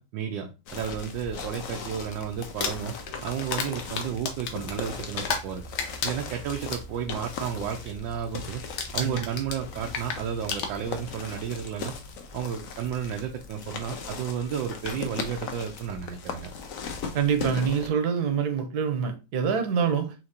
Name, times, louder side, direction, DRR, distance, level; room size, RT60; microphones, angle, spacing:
voice 1, 0.0-2.9 3.2-5.6 6.0-8.6 8.9-11.9 12.3-16.5, right 8 dB, 80° right, 1.3 m, -32 dB
sound 1, 0.7-17.9, left 4 dB, 60° left, 0.9 m, -38 dB
Crumpling crinkling, 2.4-5.5 5.8-7.2 7.6-7.9 8.1-8.5 8.8-11.2 12.1-12.2 14.2-14.3 14.7-15.0, left 5 dB, 90° left, 1.6 m, -33 dB
voice 2, 17.1-20.1, right 7 dB, 60° right, 1.3 m, -26 dB
5.8 x 2.8 x 2.7 m
omnidirectional pair, 2.1 m